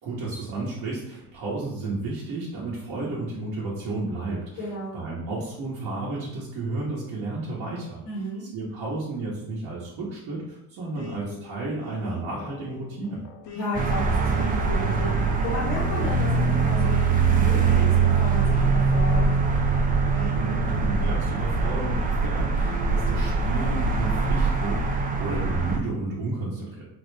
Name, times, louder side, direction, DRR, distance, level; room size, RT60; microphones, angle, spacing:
voice 1, 0.0-8.0 8.4-13.2 20.1-26.9, right 2 dB, 55° right, -7 dB, 1.1 m, -32 dB
voice 2, 4.6-5.0 8.0-8.4 13.5-19.3, left 1 dB, 85° left, -7 dB, 1.4 m, -33 dB
sound 1, 11.0-22.0 22.6-24.2, left 4 dB, 45° left, 0.7 m, -43 dB
sound 2, 13.7-25.8, right 4 dB, 20° right, 0.3 m, -23 dB
4.0 x 2.1 x 3.3 m, 0.78 s
supercardioid pair, 85°, 43 cm